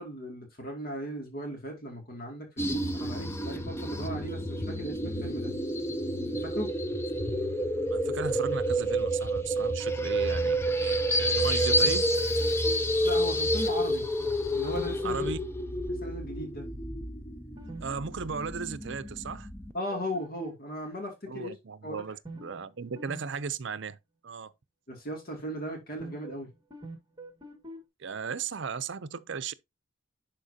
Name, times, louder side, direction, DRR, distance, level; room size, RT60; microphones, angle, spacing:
voice 1, 0.0-5.5 6.2-6.7 13.0-14.1 14.5-15.3 15.9-16.7 19.7-21.5 21.8-22.0 24.9-26.5, equal, 50° left, 2.4 m, -37 dB
sound 1, 2.6-19.7, equal, 10° left, 0.7 m, -29 dB
voice 2, 7.9-12.1 15.0-15.4 17.8-19.5 21.3-24.0 24.2-24.5 28.0-29.5, right 5 dB, 60° right, 0.6 m, -36 dB
sound 2, 11.3-13.0 14.7-15.2 17.6-17.8 18.1-18.2 19.9-20.7 22.2-22.7 23.0-23.2 23.5-23.6 26.0-26.4 26.7-27.8, right 1 dB, 20° right, 1.9 m, -43 dB
11.5 x 4.5 x 2.8 m
head